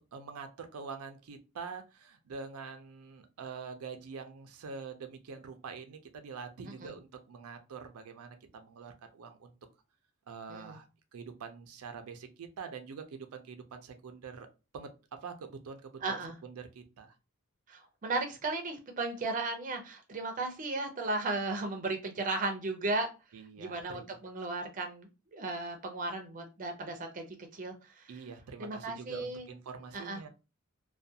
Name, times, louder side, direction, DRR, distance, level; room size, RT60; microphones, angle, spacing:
voice 1, 0.1-9.5 10.3-10.9 11.1-14.5 14.7-14.9 15.2-16.2 16.4-17.2 23.3-24.2 28.1-30.3, right 5 dB, 90° right, 7 dB, 0.4 m, -45 dB
voice 2, 16.0-16.3 17.7-23.1 23.6-27.3 27.5-28.1 28.6-29.5 29.9-30.2, right 3 dB, 35° right, 5 dB, 0.5 m, -35 dB
2.3 x 2.2 x 2.6 m, 0.29 s
head